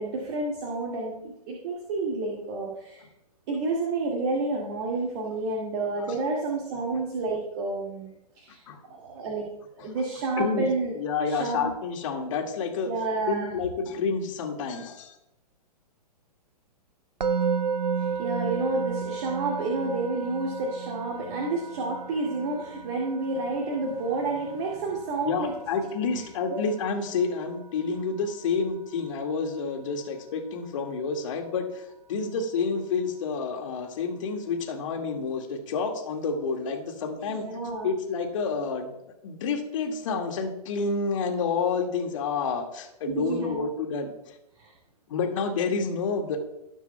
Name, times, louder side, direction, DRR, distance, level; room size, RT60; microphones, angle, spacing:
voice 1, 0.0-3.0 3.5-8.6 8.9-10.9 11.2-11.7 12.9-13.5 18.0-25.5 26.1-26.6 37.3-37.9 43.1-43.7 44.6-44.7, right 3 dB, 40° right, -1 dB, 2.1 m, -30 dB
voice 2, 11.0-12.9 13.3-15.1 25.3-37.4 37.8-38.9 39.2-44.4 45.1-46.4, left 5 dB, 50° left, 4 dB, 2.0 m, -29 dB
Musical instrument, 17.2-28.3, right 6 dB, 85° right, 0.5 m, -34 dB
19.0 x 7.0 x 2.3 m, 0.86 s
figure-of-eight pair, 115°, 21 cm